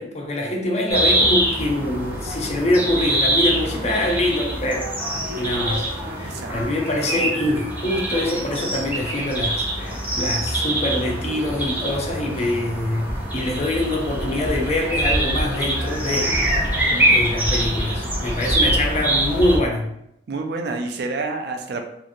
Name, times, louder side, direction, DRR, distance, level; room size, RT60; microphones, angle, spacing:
voice 1, 0.0-4.9 5.4-16.3 17.1-19.9, left 1 dB, 40° left, 1 dB, 0.5 m, -24 dB
sound 1, 0.9-19.6, right 1 dB, 10° right, 0.7 m, -24 dB
voice 2, 6.2-6.7 16.7-17.2 20.3-21.8, right 3 dB, 60° right, 4 dB, 0.4 m, -29 dB
2.8 x 2.4 x 2.5 m, 0.79 s
head